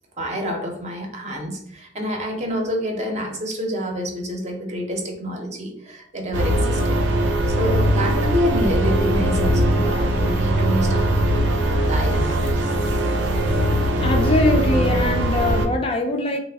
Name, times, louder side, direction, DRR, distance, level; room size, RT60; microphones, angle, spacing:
voice 1, 0.2-7.0 7.5-11.1 11.9-12.5, equal, 40° right, 2 dB, 0.6 m, -27 dB
sound 1, 6.3-15.7, right 1 dB, 80° right, 0.5 m, -20 dB
voice 2, 14.0-16.4, left 2 dB, 30° left, 4 dB, 0.3 m, -22 dB
3.2 x 2.1 x 3.4 m, 0.66 s
head